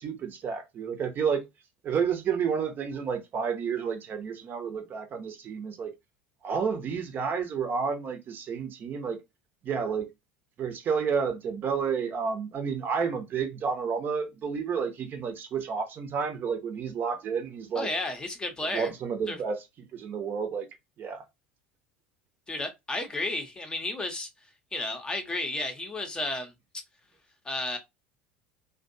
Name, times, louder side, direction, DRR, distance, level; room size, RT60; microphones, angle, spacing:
voice 1, 0.0-1.4 1.8-5.9 6.4-9.2 9.6-10.1 10.6-17.9 18.7-19.6 19.9-20.7 21.0-21.2, right 6 dB, 35° right, 0.8 m, -30 dB
voice 2, 17.7-18.9 19.3-19.4 22.5-24.3 24.7-26.5 27.4-27.8, left 2 dB, 15° left, 0.8 m, -32 dB
2.5 x 2.3 x 2.6 m
figure-of-eight pair, 70°, 6 cm